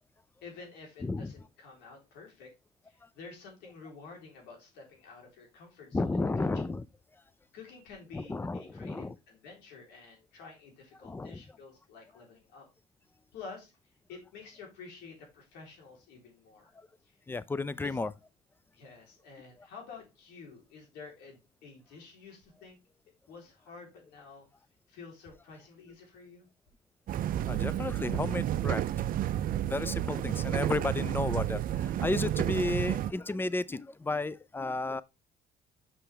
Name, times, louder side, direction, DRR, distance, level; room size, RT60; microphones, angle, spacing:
voice 1, 0.4-2.5 2.8-6.1 7.5-12.7 13.3-13.7 14.1-16.7 17.0-17.2 17.8-18.1 18.7-22.8 23.3-24.5 24.9-26.5, left 4 dB, 90° left, 3.6 m, -50 dB
voice 2, 1.0-1.3 5.9-6.8 8.1-9.1 11.0-11.4 16.8-16.9 17.3-18.1 27.5-28.8 29.7-35.0, left 3 dB, 15° left, 0.4 m, -33 dB
sound 1, 27.1-33.1, right 12 dB, 55° right, 0.5 m, -31 dB
7.1 x 5.8 x 3.4 m
cardioid pair, 110°, 17 cm